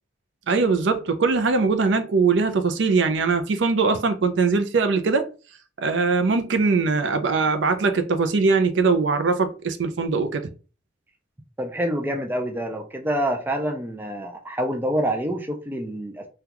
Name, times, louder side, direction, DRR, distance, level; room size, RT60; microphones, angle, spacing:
voice 1, 0.5-5.3 5.8-10.5, right 4 dB, 70° right, 0.5 m, -21 dB
voice 2, 11.6-16.3, equal, 10° right, 0.4 m, -27 dB
3.6 x 2.3 x 2.9 m
head